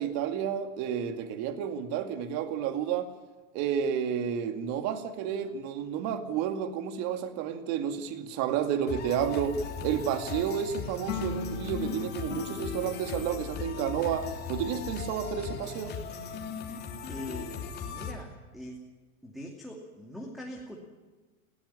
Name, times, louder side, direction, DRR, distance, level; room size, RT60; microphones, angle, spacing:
voice 1, 0.0-3.1 3.5-15.9, right 8 dB, 40° right, 7 dB, 2.3 m, -31 dB
sound 1, 8.9-18.1, left 6 dB, 25° left, 3.3 m, -38 dB
sound 2, 11.1-15.5, left 6 dB, 75° left, 2.1 m, -40 dB
voice 2, 17.1-18.8 19.2-20.8, equal, ahead, 1 dB, 2.7 m, -42 dB
20.0 x 17.0 x 10.0 m, 1.3 s
hypercardioid pair, 120°, 40 cm